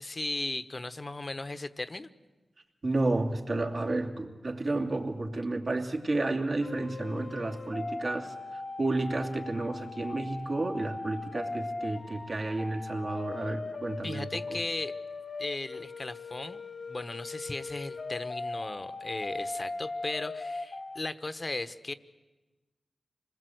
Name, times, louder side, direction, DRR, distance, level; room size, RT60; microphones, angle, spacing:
voice 1, 0.0-2.1 14.0-15.0 15.4-16.6 16.9-21.9, left 2 dB, 40° left, 12 dB, 1.1 m, -36 dB
voice 2, 2.8-14.6, right 2 dB, 60° right, 1 dB, 2.7 m, -31 dB
sound 1, 6.6-21.0, left 3 dB, 60° left, 1.5 m, -39 dB
26.5 x 20.5 x 8.0 m, 1.2 s
cardioid pair, 45°, 0 cm